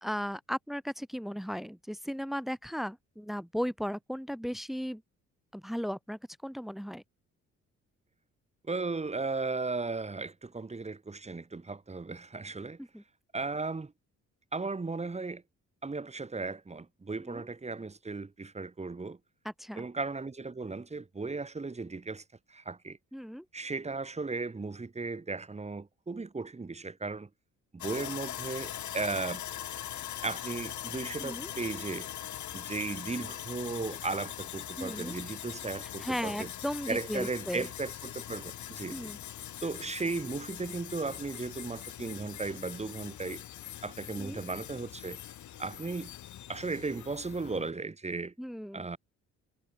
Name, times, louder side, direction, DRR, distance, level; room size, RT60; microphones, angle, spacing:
voice 1, 0.0-5.0 5.5-7.0 12.8-13.0 17.3-17.5 19.4-19.9 23.1-23.5 31.2-31.5 34.8-35.2 36.0-37.7 38.9-39.2 44.2-44.4 48.4-48.9, equal, ahead, 2.0 m, -36 dB
voice 2, 8.6-12.8 13.3-13.9 14.5-15.4 15.8-19.2 19.8-22.2 22.5-23.0 23.5-27.3 27.7-29.4 30.2-32.1 32.5-36.5 36.9-39.1 39.6-43.4 43.8-45.2 45.6-46.1 46.5-48.3 48.7-49.0, right 3 dB, 20° right, 2.5 m, -36 dB
Sawing, 27.8-47.7, left 12 dB, 70° left, 3.0 m, -42 dB
cardioid pair, 90°, 30 cm